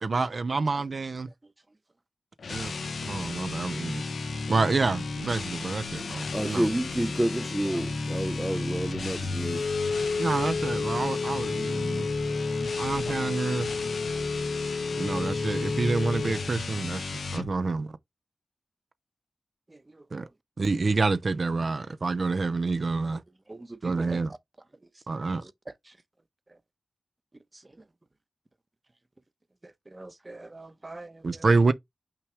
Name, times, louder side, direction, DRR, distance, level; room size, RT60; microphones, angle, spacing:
voice 1, 0.0-1.3 2.5-2.7 3.0-4.0 4.5-6.7 10.2-12.1 12.8-13.7 15.0-18.0 20.1-20.3 20.6-23.2 23.8-24.3 25.1-25.4 31.2-31.7, right 3 dB, 55° right, 0.6 m, -28 dB
sound 1, 2.4-17.5, left 3 dB, 85° left, 1.2 m, -33 dB
voice 2, 6.0-9.7, right 1 dB, 10° right, 0.5 m, -29 dB
Wind instrument woodwind instrument, 9.4-16.5, left 4 dB, 65° left, 1.1 m, -31 dB
voice 3, 23.5-24.2 29.9-31.2, right 2 dB, 30° right, 0.9 m, -42 dB
5.8 x 4.9 x 3.3 m
wide cardioid pair, 85°, 0 cm